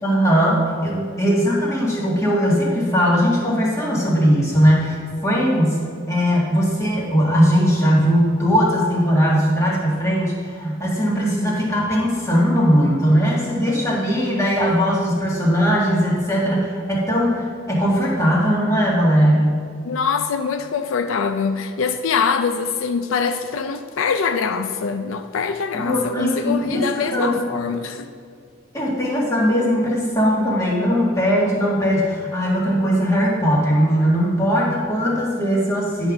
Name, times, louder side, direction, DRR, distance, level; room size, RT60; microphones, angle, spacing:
voice 1, 0.0-19.6 25.7-27.4 28.7-36.1, equal, 15° left, -5 dB, 1.6 m, -19 dB
voice 2, 19.8-28.1, left 5 dB, 85° left, 8 dB, 0.4 m, -23 dB
10.5 x 3.6 x 6.0 m, 2.2 s
head